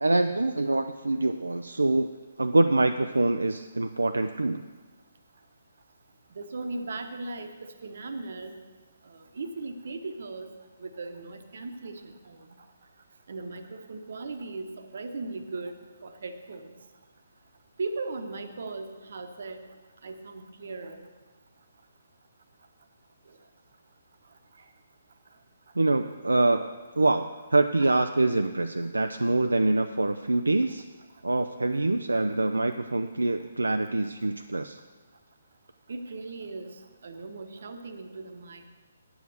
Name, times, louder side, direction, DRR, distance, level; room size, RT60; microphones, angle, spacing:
voice 1, 0.0-2.1 2.4-4.6 25.8-30.9 31.2-34.8, right 2 dB, 80° right, 7 dB, 0.4 m, -25 dB
voice 2, 6.3-8.6 9.0-10.5 10.8-12.4 13.3-15.7 16.0-16.7 17.8-19.6 20.0-21.1 27.8-28.0 35.9-36.7 37.0-38.6, right 3 dB, 60° right, 7 dB, 1.0 m, -38 dB
9.0 x 7.2 x 6.6 m, 1.4 s
figure-of-eight pair, 135°, 0 cm